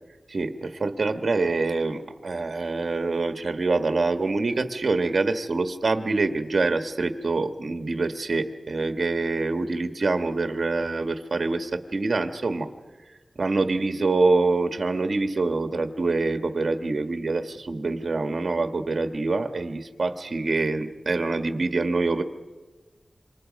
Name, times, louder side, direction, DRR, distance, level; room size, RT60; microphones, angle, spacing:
voice 1, 0.3-12.7 13.4-22.2, right 3 dB, 60° right, 7 dB, 1.5 m, -25 dB
27.5 x 24.5 x 5.3 m, 1.3 s
wide cardioid pair, 100°, 0 cm